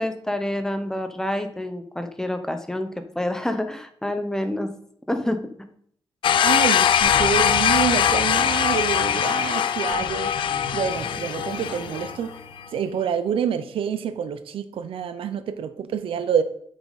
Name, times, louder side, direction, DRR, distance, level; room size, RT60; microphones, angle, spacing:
voice 1, 0.0-4.8 5.1-5.5, left 1 dB, 5° left, 8 dB, 0.9 m, -28 dB
sound 1, 6.2-12.1, left 9 dB, 65° left, 0.4 m, -21 dB
voice 2, 6.4-12.3 12.7-16.4, right 8 dB, 75° right, 11 dB, 0.7 m, -27 dB
sound 2, 7.0-13.2, left 1 dB, 30° left, 3.5 m, -37 dB
8.6 x 6.4 x 4.1 m, 0.64 s
wide cardioid pair, 135°, 9 cm